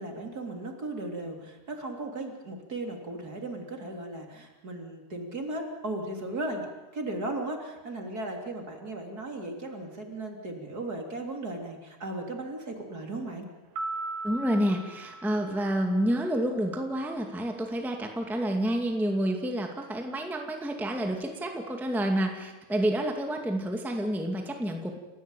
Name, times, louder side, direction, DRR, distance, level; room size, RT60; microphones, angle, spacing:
voice 1, 0.0-6.7 6.9-13.5, right 2 dB, 25° right, 2 dB, 3.1 m, -36 dB
sound 1, 13.8-16.3, right 2 dB, 60° right, 3.1 m, -38 dB
voice 2, 14.2-25.0, right 1 dB, ahead, 3 dB, 0.6 m, -29 dB
29.0 x 15.5 x 9.1 m, 1.1 s
omnidirectional pair, 4.6 m